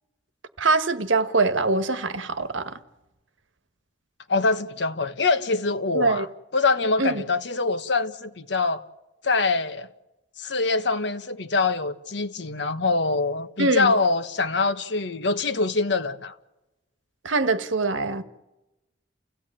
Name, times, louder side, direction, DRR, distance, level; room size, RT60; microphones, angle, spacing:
voice 1, 0.6-2.8 5.9-6.3 7.0-7.2 13.6-13.9 17.2-18.2, right 3 dB, 85° right, 1.3 m, -23 dB
voice 2, 4.3-6.3 6.5-8.8 9.2-9.9 10.4-16.3, left 3 dB, 65° left, 1.2 m, -24 dB
29.5 x 16.5 x 8.9 m
head